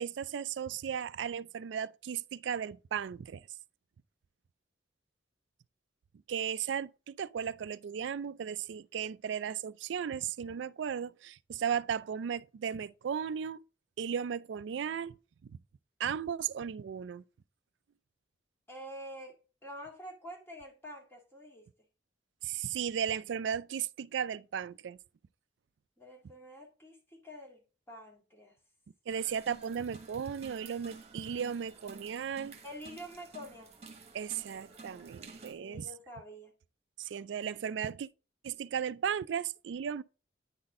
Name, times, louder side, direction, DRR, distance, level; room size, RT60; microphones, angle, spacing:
voice 1, 0.0-3.4 6.3-13.6 14.0-15.2 16.0-17.2 22.4-25.0 29.1-32.5 34.1-35.9 37.0-38.1 38.4-40.0, right 8 dB, 75° right, 0.3 m, -35 dB
voice 2, 18.7-19.4 19.6-21.6 26.0-27.6 27.9-28.5 32.6-33.8 35.6-36.5, equal, 15° left, 2.1 m, -47 dB
sound 1, 29.1-35.5, right 3 dB, 35° right, 1.4 m, -52 dB
9.6 x 4.1 x 3.7 m
head